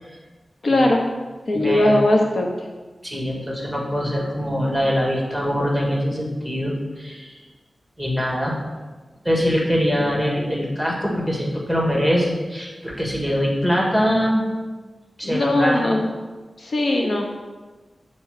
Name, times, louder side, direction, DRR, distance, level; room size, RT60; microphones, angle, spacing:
voice 1, 0.6-1.1 1.5-2.5 15.2-16.1 16.6-17.2, left 1 dB, 65° left, 1 dB, 0.8 m, -19 dB
voice 2, 1.5-2.0 3.0-7.3 8.0-8.5 9.2-14.5 15.2-15.8, equal, 10° left, -2 dB, 1.9 m, -23 dB
6.7 x 4.3 x 6.5 m, 1.3 s
wide cardioid pair, 90°, 0 cm